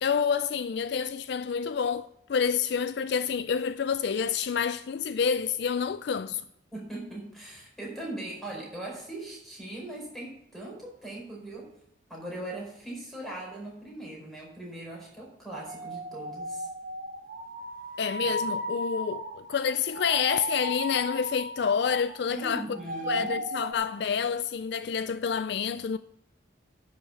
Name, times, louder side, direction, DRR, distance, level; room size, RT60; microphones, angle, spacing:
voice 1, 0.0-6.4 18.0-22.6 23.1-26.0, left 6 dB, 55° left, 0.3 m, -28 dB
voice 2, 6.7-11.7 12.1-16.7 18.2-18.3 22.3-23.4, right 1 dB, ahead, 4.7 m, -40 dB
sound 1, 15.5-22.3 22.6-23.7, right 1 dB, 45° right, 1.0 m, -36 dB
10.5 x 6.6 x 7.0 m
head